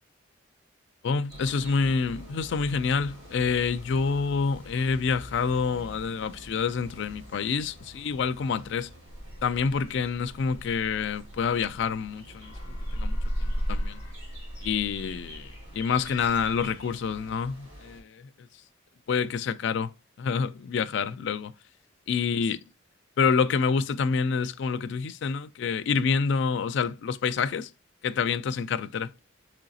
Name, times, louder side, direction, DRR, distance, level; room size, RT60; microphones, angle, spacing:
voice 1, 1.0-8.9 9.4-12.5 12.9-14.0 14.6-18.3 19.1-19.9 20.2-21.5 22.1-22.6 23.2-27.7 28.0-29.1, left 5 dB, 60° left, 0.3 m, -27 dB
sound 1, 1.3-18.0, equal, 25° right, 2.0 m, -47 dB
sound 2, 9.1-12.1 12.4-16.6, equal, 30° left, 0.7 m, -34 dB
3.9 x 3.1 x 2.6 m
head